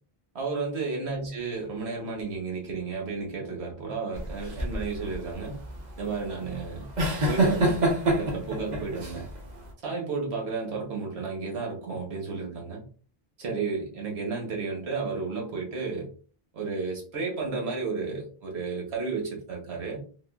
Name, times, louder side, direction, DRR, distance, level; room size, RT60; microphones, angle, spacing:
voice 1, 0.3-5.6 6.0-6.9 7.2-9.3 9.8-12.8 13.4-16.1 16.5-20.0, right 4 dB, 85° right, 1.2 m, -32 dB
sound 1, 4.1-9.7, right 1 dB, 45° right, 0.8 m, -27 dB
3.5 x 2.3 x 2.3 m
omnidirectional pair, 1.1 m